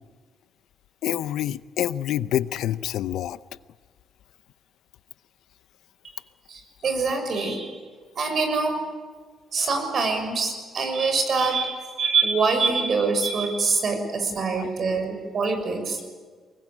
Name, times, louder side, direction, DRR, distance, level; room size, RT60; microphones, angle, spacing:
voice 1, 1.0-3.4 14.5-14.7, left 12 dB, 80° left, 16 dB, 0.7 m, -27 dB
voice 2, 6.5-7.7 8.1-8.8 9.5-16.0, right 4 dB, 55° right, 5 dB, 6.5 m, -24 dB
24.0 x 20.5 x 8.7 m, 1.5 s
cardioid pair, 90°, 0 cm